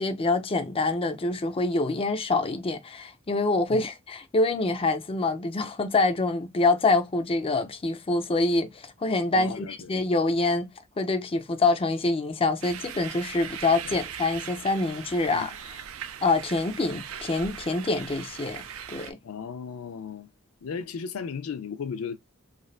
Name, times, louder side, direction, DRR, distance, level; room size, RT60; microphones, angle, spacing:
voice 1, 0.0-10.7 11.0-15.8 16.2-18.6 18.9-19.2, left 3 dB, 25° left, 0.5 m, -26 dB
voice 2, 9.3-9.9 15.3-15.5 19.2-20.3 20.6-22.2, left 6 dB, 85° left, 0.5 m, -35 dB
sound 1, 12.6-19.1, right 8 dB, 75° right, 0.5 m, -40 dB
3.2 x 2.5 x 2.3 m
head